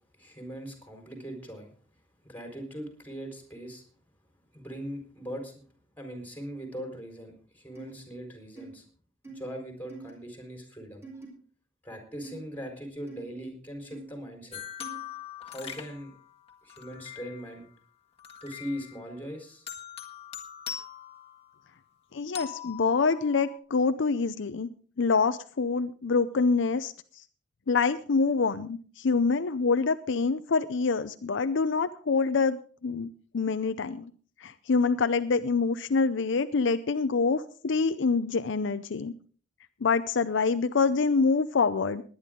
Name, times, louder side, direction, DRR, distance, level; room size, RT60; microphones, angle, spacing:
voice 1, 0.2-1.7 2.2-3.8 4.5-5.5 6.0-8.8 9.3-11.0 11.8-14.6 15.4-16.1 16.6-17.7 18.4-19.7, equal, 10° left, 3 dB, 4.3 m, -40 dB
sound 1, 7.8-7.9 8.6-8.7 9.2-9.4 9.9-10.1 11.0-11.3 12.2-12.4 13.1-13.2 13.9-14.0 14.8-15.0, right 4 dB, 15° right, 4.2 m, -44 dB
sound 2, 14.5-17.6 18.2-19.2 19.7-21.8 22.3-23.6, left 9 dB, 30° left, 1.6 m, -42 dB
voice 2, 22.1-24.7 25.0-26.9 27.7-34.1 34.4-39.1 39.8-42.0, left 4 dB, 70° left, 11 dB, 0.6 m, -26 dB
19.5 x 10.5 x 3.7 m, 0.42 s
head